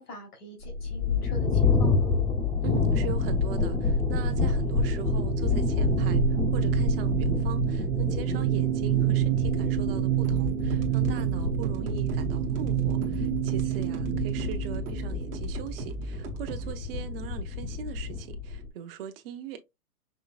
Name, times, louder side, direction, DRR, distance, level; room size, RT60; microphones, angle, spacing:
voice 1, 0.0-2.1 13.7-13.8, left 1 dB, 80° left, 2.9 m, -43 dB
sound 1, 0.6-18.7, left 4 dB, 10° left, 0.7 m, -28 dB
voice 2, 2.6-19.6, right 9 dB, 40° right, 1.0 m, -40 dB
sound 2, 3.8-16.0, right 17 dB, 60° right, 0.7 m, -29 dB
sound 3, 10.2-16.7, right 2 dB, 20° right, 0.8 m, -38 dB
5.7 x 3.1 x 2.3 m
hypercardioid pair, 145°, 45 cm